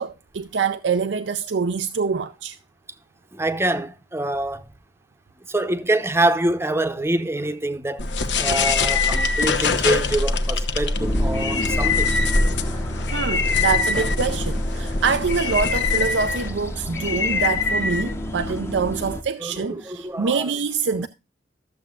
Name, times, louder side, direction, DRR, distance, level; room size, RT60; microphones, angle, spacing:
voice 1, 0.0-2.6 13.1-21.1, right 5 dB, 90° right, 0.5 m, -25 dB
voice 2, 3.3-4.7 5.5-8.1 8.4-12.1 16.5-16.6 19.4-20.5 20.9-21.1, right 2 dB, 15° right, 0.8 m, -25 dB
sound 1, 8.0-18.6, left 4 dB, 85° left, 1.0 m, -24 dB
sound 2, 11.0-19.2, equal, 15° left, 0.8 m, -28 dB
13.5 x 7.5 x 2.4 m
head